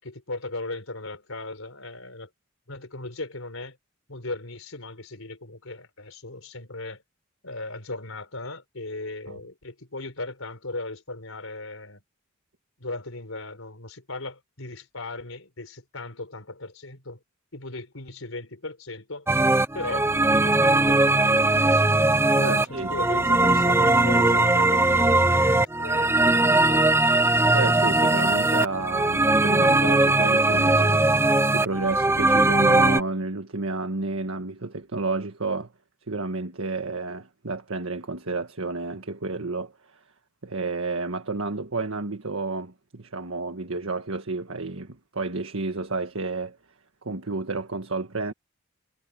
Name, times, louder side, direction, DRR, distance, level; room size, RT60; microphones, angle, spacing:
voice 1, 0.0-2.3 2.7-3.8 4.1-7.0 7.4-12.0 12.8-17.2 17.5-19.3 19.7-22.0 22.5-26.8, left 2 dB, 85° left, 4.3 m, -37 dB
sound 1, 19.3-33.0, right 2 dB, 10° right, 0.8 m, -20 dB
voice 2, 22.3-22.9 27.5-35.7 36.1-40.0 40.4-46.6 47.0-48.3, right 3 dB, 85° right, 1.6 m, -31 dB
head